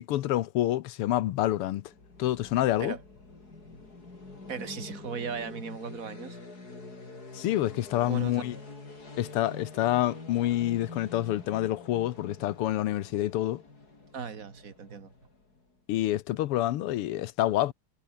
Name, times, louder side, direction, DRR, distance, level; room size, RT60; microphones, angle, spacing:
voice 1, 0.0-1.9 2.2-3.0 7.3-8.5 9.2-13.6 15.9-17.7, left 14 dB, 90° left, 1.8 m, -27 dB
sound 1, 1.8-15.7, left 3 dB, 45° left, 5.1 m, -46 dB
voice 2, 4.5-6.4 8.1-8.4 14.1-15.1, right 6 dB, 40° right, 2.1 m, -37 dB
omnidirectional pair, 2.4 m